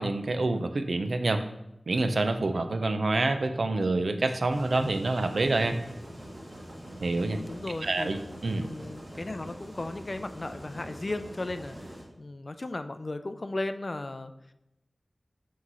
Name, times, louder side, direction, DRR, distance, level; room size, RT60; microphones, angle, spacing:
voice 1, 0.0-1.4 1.9-5.8 7.0-7.4 7.8-8.7, right 2 dB, 80° right, 8 dB, 0.5 m, -27 dB
sound 1, 4.5-12.0, equal, 25° right, 1.9 m, -44 dB
voice 2, 7.2-8.1 8.6-11.8 12.2-14.3, left 2 dB, 50° left, 10 dB, 0.4 m, -36 dB
5.9 x 3.1 x 5.4 m, 0.88 s
wide cardioid pair, 60°, 0 cm